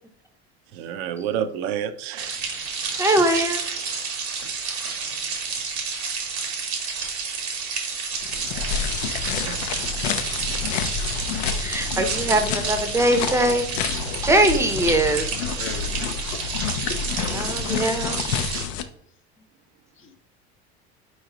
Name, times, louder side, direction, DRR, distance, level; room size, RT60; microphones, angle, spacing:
voice 1, 0.7-2.4 3.3-3.4 9.4-9.6 11.8-11.9, right 9 dB, 70° right, 0.6 m, -29 dB
sound 1, 2.2-18.7, right 5 dB, 90° right, 1.3 m, -30 dB
voice 2, 3.0-3.6 11.6-13.7 14.2-15.3 17.3-18.2, right 1 dB, 10° right, 0.7 m, -21 dB
sound 2, 8.2-18.8, left 7 dB, 80° left, 0.6 m, -29 dB
voice 3, 15.6-16.5 18.0-18.7, left 5 dB, 40° left, 0.8 m, -40 dB
4.4 x 3.1 x 3.7 m
hypercardioid pair, 90°, 32 cm